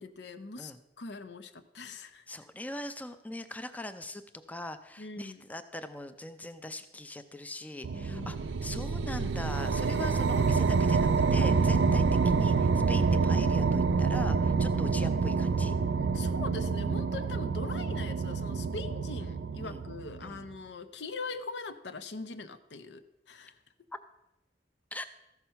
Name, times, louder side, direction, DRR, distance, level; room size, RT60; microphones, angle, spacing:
voice 1, 0.0-0.7 1.0-2.2 5.0-5.4 7.9-8.5 14.7-15.0 16.1-23.6, left 3 dB, 80° left, 10 dB, 0.7 m, -42 dB
voice 2, 2.3-4.2 4.5-15.8 19.6-19.8 20.2-20.4 24.9-25.1, left 1 dB, 10° left, 9 dB, 0.4 m, -41 dB
sound 1, 7.8-20.4, right 4 dB, 90° right, 0.4 m, -27 dB
14.0 x 6.0 x 5.5 m, 0.90 s
head